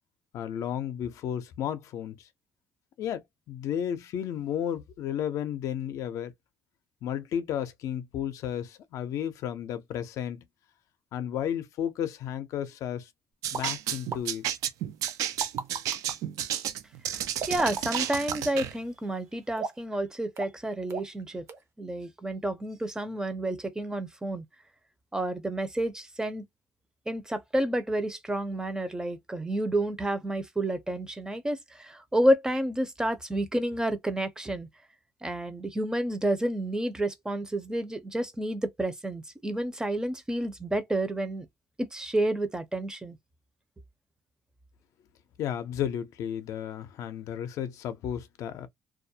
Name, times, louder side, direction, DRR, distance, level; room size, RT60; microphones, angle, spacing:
voice 1, 0.3-2.3 3.0-6.3 7.0-10.5 11.1-13.1 13.5-14.5 45.4-48.7, left 9 dB, 70° left, 0.4 m, -33 dB
sound 1, 13.4-18.7, right 11 dB, 85° right, 0.3 m, -32 dB
sound 2, 13.5-13.6 14.1-14.2 15.1-16.1 17.4-18.4 19.6-19.9 20.4-20.6 20.9-21.2 21.5-21.6, right 5 dB, 55° right, 0.7 m, -34 dB
voice 2, 17.5-21.4 21.8-24.4 25.1-26.4 27.1-34.7 35.2-41.5 41.9-43.2, right 1 dB, 10° right, 0.5 m, -30 dB
2.3 x 2.0 x 2.6 m
cardioid pair, 100°, 6 cm